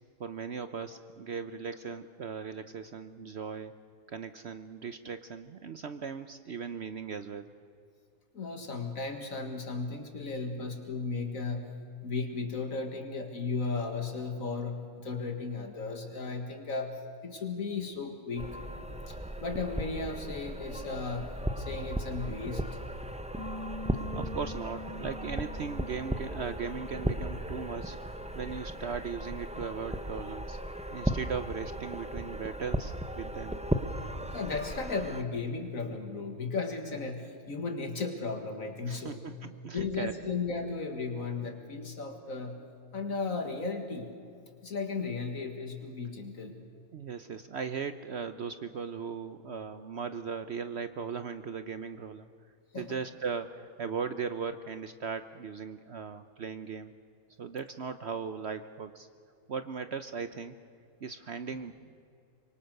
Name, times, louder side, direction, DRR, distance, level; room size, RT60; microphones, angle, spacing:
voice 1, 0.2-3.7 4.1-7.4 24.1-28.0 28.3-30.6 30.9-33.6 38.8-40.2 46.9-52.3 52.7-56.9 57.4-59.1 59.5-60.5 61.0-61.7, right 6 dB, 55° right, 11 dB, 0.9 m, -38 dB
voice 2, 8.3-11.7 12.0-17.0 17.2-18.6 19.1-22.7 34.3-39.2 39.7-42.6 42.9-44.1 44.6-46.6 52.7-53.0, left 4 dB, 65° left, 5 dB, 2.2 m, -35 dB
sound 1, 18.4-35.2, right 1 dB, 5° right, 0.7 m, -36 dB
Bass guitar, 23.4-27.7 28.0-29.6, left 2 dB, 20° left, 1.0 m, -46 dB
25.5 x 23.5 x 6.6 m, 2.5 s
omnidirectional pair, 1.5 m